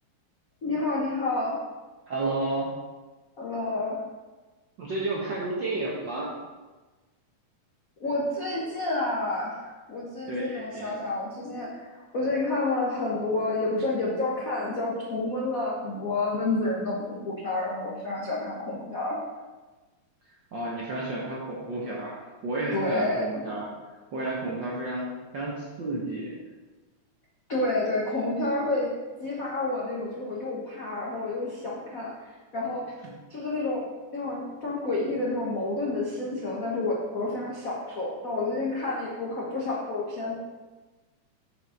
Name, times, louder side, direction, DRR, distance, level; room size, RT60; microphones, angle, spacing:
voice 1, 0.6-1.6 3.4-4.0 8.0-19.2 22.7-23.2 27.5-32.8 33.3-33.8 34.1-40.3, left 2 dB, 70° left, -5 dB, 0.7 m, -29 dB
voice 2, 2.1-2.7 4.8-6.3 10.3-10.9 20.5-22.1 22.4-23.7 24.1-26.4, right 2 dB, 65° right, -5 dB, 1.2 m, -31 dB
7.8 x 5.0 x 5.1 m, 1.2 s
omnidirectional pair, 3.4 m